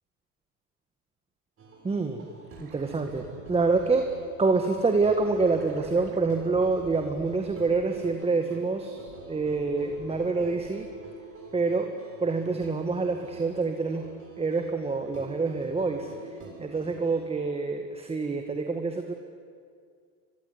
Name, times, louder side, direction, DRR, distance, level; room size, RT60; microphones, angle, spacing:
sound 1, 1.6-17.3, right 3 dB, 30° right, 7.4 m, -46 dB
voice 1, 1.8-2.2 2.6-4.1 4.4-10.9 11.5-11.9 12.2-14.1 14.4-19.1, right 3 dB, 15° right, 5 dB, 1.8 m, -27 dB
sound 2, 2.4-8.2 8.6-11.1 13.6-13.7, right 5 dB, 60° right, 6.5 m, -50 dB
25.5 x 22.0 x 9.7 m, 2.1 s
supercardioid pair, 115°, 44 cm